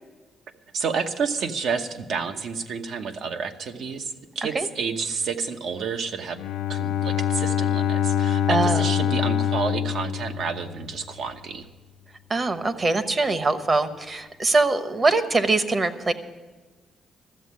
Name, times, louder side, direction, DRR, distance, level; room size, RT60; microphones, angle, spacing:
voice 1, 0.7-6.4 6.7-11.7, right 5 dB, 70° right, 6 dB, 0.9 m, -30 dB
Bowed string instrument, 6.4-11.2, left 9 dB, 90° left, 0.4 m, -25 dB
voice 2, 8.5-8.9 12.3-16.1, right 3 dB, 35° right, 11 dB, 1.0 m, -22 dB
13.0 x 7.5 x 9.4 m, 1.3 s
cardioid pair, 90°, 0 cm